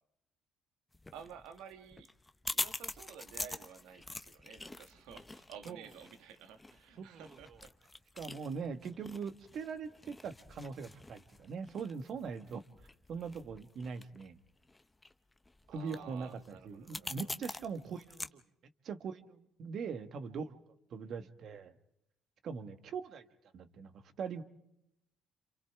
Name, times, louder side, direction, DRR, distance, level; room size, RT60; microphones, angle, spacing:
sound 1, 0.9-18.3, left 2 dB, 15° left, 0.9 m, -45 dB
voice 1, 1.1-2.1 2.5-7.7 15.7-17.3 21.0-21.3, right 7 dB, 85° right, 8 dB, 1.5 m, -52 dB
voice 2, 7.0-7.6 8.2-12.6 13.1-14.4 15.7-18.4 18.8-20.6 20.9-21.7 22.4-23.3 23.5-24.4, right 5 dB, 60° right, 9 dB, 1.6 m, -42 dB
29.0 x 27.5 x 3.7 m, 0.80 s
cardioid pair, 85°, 0 cm